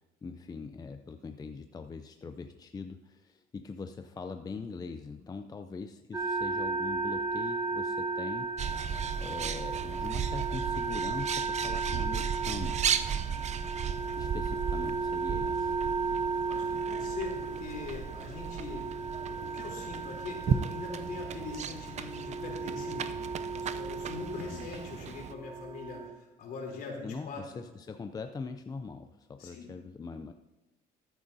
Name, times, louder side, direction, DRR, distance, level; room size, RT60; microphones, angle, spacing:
voice 1, 0.0-8.5 9.2-12.8 14.2-15.8 24.3-24.7 27.0-30.3, left 4 dB, 20° left, 7 dB, 0.5 m, -42 dB
sound 1, 6.1-26.1, right 4 dB, 15° right, 1.2 m, -35 dB
Bird, 8.6-25.3, right 7 dB, 45° right, 0.6 m, -36 dB
voice 2, 16.5-18.9 19.3-27.6 29.4-29.7, left 4 dB, 60° left, 0 dB, 3.4 m, -42 dB
14.0 x 9.1 x 2.7 m, 1.1 s
cardioid pair, 110°, 17 cm